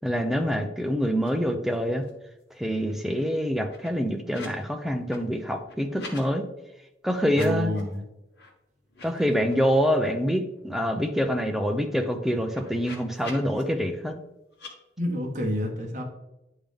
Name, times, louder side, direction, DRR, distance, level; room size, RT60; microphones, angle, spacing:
voice 1, 0.0-2.1 2.6-6.5 7.0-7.7 9.0-14.1, equal, ahead, 5 dB, 0.5 m, -26 dB
sound 1, 1.1-1.3 1.5-2.2 2.6-4.6 4.9-6.3 7.2-7.9 8.3-8.5 8.8-10.2 10.6-10.7 10.9-13.6 14.5-14.7, left 2 dB, 70° left, 1.4 m, -46 dB
voice 2, 7.3-8.0 15.0-16.0, left 1 dB, 40° right, 0 dB, 1.3 m, -29 dB
10.0 x 3.6 x 3.5 m, 0.93 s
head